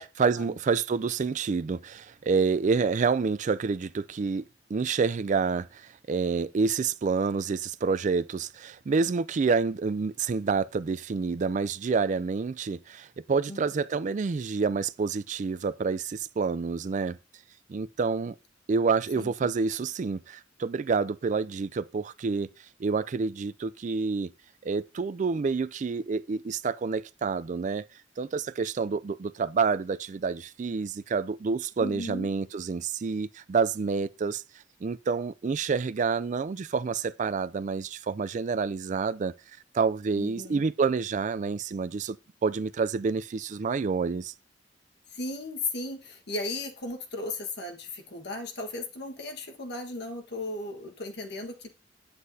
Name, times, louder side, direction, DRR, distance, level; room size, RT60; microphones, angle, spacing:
voice 1, 0.0-4.4 4.7-17.2 17.7-18.3 18.7-22.5 22.8-24.3 24.6-27.9 28.2-34.4 34.8-39.3 39.7-42.2 42.4-44.3, right 5 dB, 40° right, 0.4 m, -28 dB
voice 2, 13.5-13.8 19.2-19.3 31.8-32.3 40.2-40.6 45.1-51.7, left 2 dB, 60° left, 1.5 m, -36 dB
9.6 x 8.2 x 2.7 m
head